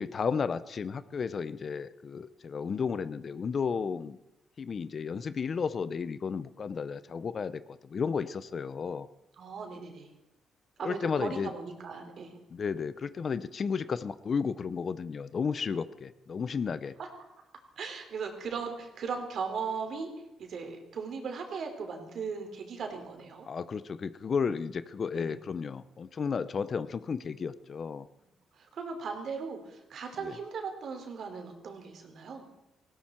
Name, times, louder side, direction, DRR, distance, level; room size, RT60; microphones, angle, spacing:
voice 1, 0.0-4.2 4.6-9.1 10.8-11.5 12.5-16.9 23.5-28.1 30.2-30.3, left 6 dB, 45° left, 15 dB, 0.6 m, -33 dB
voice 2, 9.4-10.1 10.8-12.4 17.0-17.1 17.8-20.1 20.4-23.5 25.1-25.4 28.5-32.4, right 5 dB, 60° right, 4 dB, 3.4 m, -38 dB
18.0 x 16.0 x 4.4 m, 0.93 s
cardioid pair, 90°, 0 cm